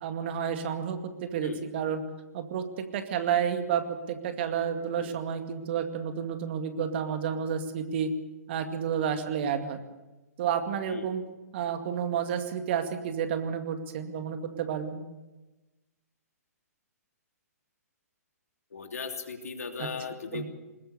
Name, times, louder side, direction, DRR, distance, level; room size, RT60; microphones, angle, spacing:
voice 1, 0.0-2.0 2.3-8.1 8.5-9.8 10.4-11.2 11.5-15.0 19.8-19.9 20.3-20.5, right 8 dB, 40° right, 7 dB, 2.2 m, -30 dB
voice 2, 18.7-20.5, left 5 dB, 65° left, 5 dB, 3.0 m, -37 dB
21.0 x 20.5 x 6.8 m, 1.1 s
figure-of-eight pair, 120°, 9 cm